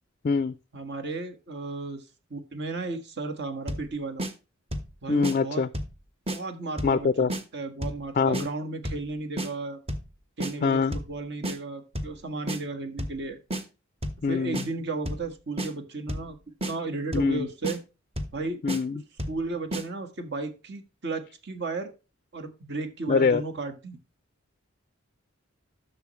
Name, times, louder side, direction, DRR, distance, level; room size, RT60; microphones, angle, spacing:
voice 1, 0.7-2.0 2.3-4.2 5.0-5.6 6.3-7.3 7.5-9.8 10.4-13.4 14.3-16.4 16.7-17.8 18.3-18.6 19.3-21.9 22.3-24.0, right 3 dB, 55° right, 5 dB, 1.6 m, -34 dB
sound 1, 3.7-3.9 4.2-4.3 4.7-4.9 5.2-5.4 5.7-6.0 6.3-6.4 6.8-7.0 7.3-7.4 7.8-8.0 8.3-8.5 8.9-9.1 9.4-9.5 9.9-10.1 10.4-10.5 10.9-11.1 11.4-11.6 12.0-12.2 12.5-12.6 13.0-13.2 13.5-13.6 14.0-14.2 14.5-14.7 15.1-15.3 15.6-15.7 16.1-16.3 16.6-16.7 17.1-17.4 17.6-17.8 18.2-18.4 18.7-18.8 19.2-19.4 19.7-19.8, equal, 30° right, 1.2 m, -31 dB
voice 2, 5.1-5.7 6.8-7.3 8.2-8.5 10.6-11.0 14.2-14.6 17.1-17.5 18.6-19.0 23.1-23.4, left 5 dB, 40° left, 14 dB, 0.4 m, -24 dB
11.5 x 6.7 x 3.1 m, 0.30 s
head